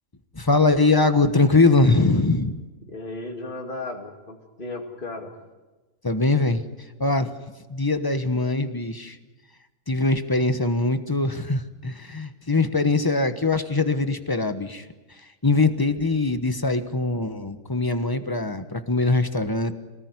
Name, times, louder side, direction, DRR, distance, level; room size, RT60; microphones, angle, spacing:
voice 1, 0.3-2.6 6.0-6.6 7.0-7.3 7.7-9.2 9.9-14.9 15.4-19.8, left 3 dB, 15° left, 10 dB, 1.1 m, -22 dB
voice 2, 2.9-5.3, left 2 dB, 35° left, 2 dB, 2.6 m, -35 dB
25.5 x 19.0 x 9.7 m, 1.2 s
omnidirectional pair, 1.5 m